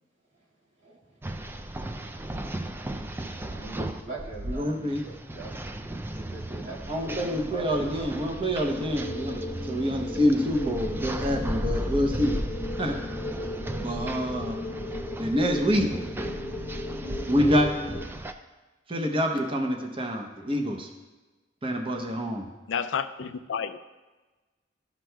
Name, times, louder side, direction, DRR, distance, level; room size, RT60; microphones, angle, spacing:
sound 1, 1.2-18.3, right 1 dB, 10° right, 0.3 m, -37 dB
voice 1, 2.6-3.1 3.5-5.5 6.2-8.1, right 3 dB, 90° right, -5 dB, 2.0 m, -43 dB
voice 2, 4.5-5.0 6.9-12.4 12.8-13.0 13.8-14.6 15.2-15.9 17.3-17.7 18.9-20.9 21.6-22.4, equal, 30° right, 2 dB, 0.7 m, -26 dB
sound 2, 8.6-18.0, left 1 dB, 20° left, 0.9 m, -34 dB
voice 3, 22.7-23.8, left 7 dB, 80° left, 11 dB, 0.4 m, -30 dB
12.5 x 6.1 x 2.2 m, 1.2 s
head